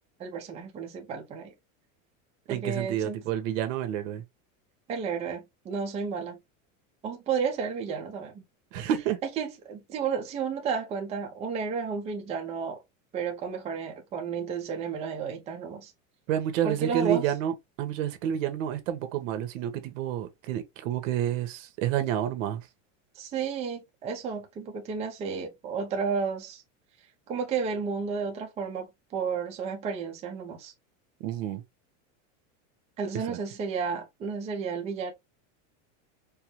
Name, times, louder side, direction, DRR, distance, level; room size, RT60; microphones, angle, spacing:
voice 1, 0.2-1.5 2.5-3.2 4.9-6.4 7.0-8.4 9.4-12.8 13.1-15.9 16.6-17.3 23.2-26.6 27.3-30.7 33.0-35.1, right 6 dB, 15° right, 0.5 m, -32 dB
voice 2, 2.5-4.2 8.7-9.2 16.3-22.7 31.2-31.6 33.3-33.4, right 10 dB, 70° right, 1.1 m, -29 dB
4.6 x 2.1 x 2.9 m
supercardioid pair, 160°, 40 cm